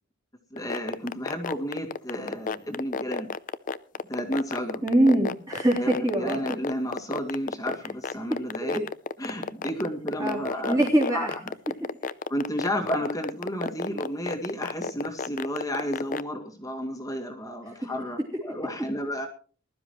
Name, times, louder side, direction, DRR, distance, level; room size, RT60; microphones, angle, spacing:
voice 1, 0.5-3.3 4.1-4.8 5.8-8.8 9.2-10.8 11.1-11.4 12.3-19.3, equal, 15° left, 3 dB, 2.0 m, -32 dB
sound 1, 0.6-16.2, left 5 dB, 40° left, 0.5 m, -30 dB
voice 2, 4.8-6.4 10.2-10.4 10.7-11.3, right 1 dB, 15° right, -3 dB, 3.3 m, -22 dB
20.5 x 12.5 x 3.1 m, 0.40 s
head